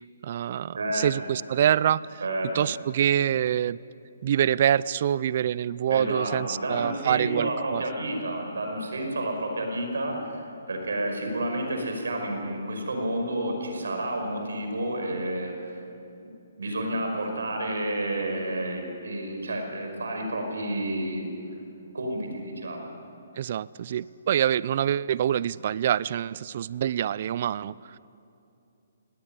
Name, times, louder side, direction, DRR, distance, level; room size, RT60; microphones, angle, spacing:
voice 1, 0.2-2.2 2.5-3.8 4.2-7.8 23.4-27.7, right 10 dB, 45° right, 21 dB, 0.4 m, -25 dB
voice 2, 0.7-1.1 2.2-2.5 5.9-15.8 16.6-21.3 21.9-22.9, right 1 dB, 90° right, 3 dB, 5.3 m, -30 dB
19.0 x 19.0 x 9.0 m, 2.7 s
hypercardioid pair, 155°, 0 cm